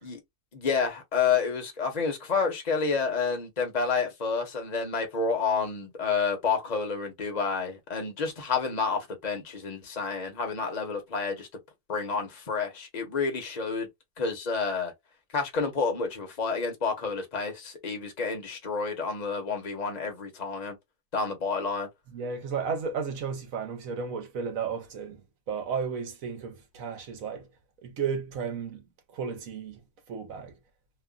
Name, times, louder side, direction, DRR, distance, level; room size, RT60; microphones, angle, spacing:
voice 1, 0.5-11.5 11.9-13.9 14.2-14.9 15.3-20.8 21.1-21.9, left 5 dB, 30° left, 1.0 m, -29 dB
voice 2, 22.1-27.5 27.8-29.8 30.1-30.6, right 6 dB, 65° right, 1.2 m, -34 dB
3.1 x 2.4 x 2.3 m
omnidirectional pair, 1.6 m